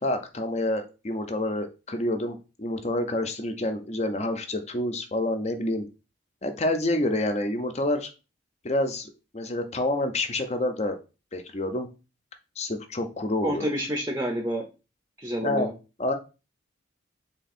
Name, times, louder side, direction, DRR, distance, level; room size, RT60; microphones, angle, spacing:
voice 1, 0.0-5.8 6.4-8.1 8.6-11.0 11.3-11.9 12.6-13.7 15.4-15.7 16.0-16.1, left 1 dB, 35° left, 7 dB, 0.6 m, -28 dB
voice 2, 13.4-14.7 15.2-15.7, equal, 15° right, 2 dB, 0.6 m, -28 dB
3.5 x 3.4 x 4.2 m, 0.31 s
head